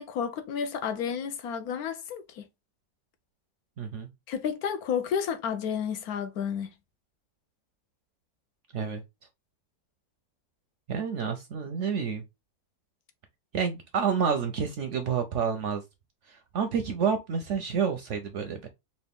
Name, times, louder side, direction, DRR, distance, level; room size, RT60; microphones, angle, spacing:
voice 1, 0.0-2.4 4.3-6.7, left 7 dB, 70° left, 1.1 m, -31 dB
voice 2, 3.8-4.1 8.7-9.0 10.9-12.2 13.5-15.8 16.3-18.7, right 6 dB, 65° right, 0.7 m, -29 dB
4.2 x 2.4 x 3.4 m
omnidirectional pair, 1.7 m